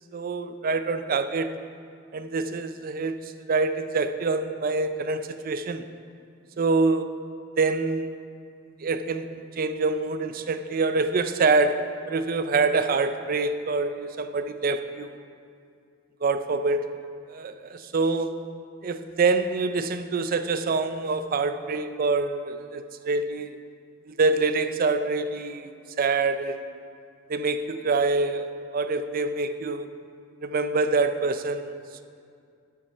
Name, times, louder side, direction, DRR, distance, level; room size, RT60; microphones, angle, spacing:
voice 1, 0.1-1.6 2.1-5.9 6.6-7.2 7.6-8.1 8.8-15.2 16.2-16.9 17.3-18.4 18.8-23.6 24.1-26.7 27.3-29.9 30.4-31.7, right 3 dB, 45° right, 10 dB, 0.4 m, -26 dB
8.4 x 7.5 x 5.4 m, 2.3 s
head